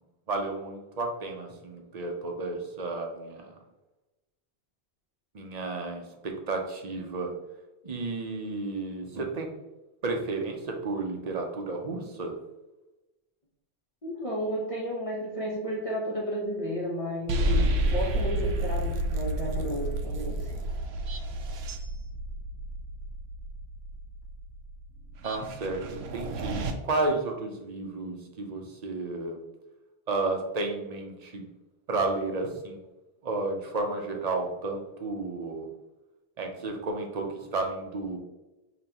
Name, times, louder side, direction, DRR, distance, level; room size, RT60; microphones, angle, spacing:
voice 1, 0.3-3.5 5.3-7.3 7.8-9.5 10.0-12.4 25.2-29.4 30.1-31.4 31.9-32.8 33.2-35.7 36.4-38.2, right 3 dB, 45° right, 2 dB, 0.7 m, -32 dB
voice 2, 14.0-20.6, equal, 35° left, -5 dB, 0.9 m, -33 dB
sound 1, 17.3-26.7, right 1 dB, 85° right, 0.8 m, -30 dB
5.3 x 2.9 x 2.9 m, 1.0 s
omnidirectional pair, 1.1 m